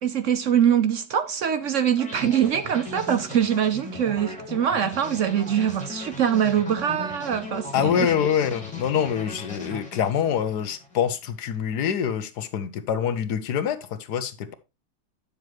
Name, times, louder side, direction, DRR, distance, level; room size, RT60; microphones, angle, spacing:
voice 1, 0.0-8.1, right 9 dB, 60° right, 0.9 m, -23 dB
sound 1, 2.0-11.0, left 1 dB, 5° left, 2.5 m, -38 dB
voice 2, 7.7-14.5, left 8 dB, 80° left, 1.5 m, -25 dB
9.6 x 6.9 x 3.0 m
omnidirectional pair, 1.7 m